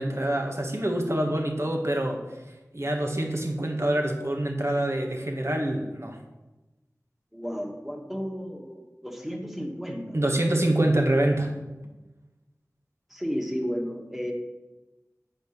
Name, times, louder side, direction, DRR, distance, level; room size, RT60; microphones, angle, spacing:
voice 1, 0.0-2.2 2.7-6.2 10.1-11.5, right 1 dB, 50° right, 2 dB, 1.6 m, -26 dB
voice 2, 7.3-10.2 13.1-14.3, equal, 5° right, 1 dB, 1.9 m, -33 dB
9.1 x 5.2 x 6.6 m, 1.1 s
wide cardioid pair, 40°, 6 cm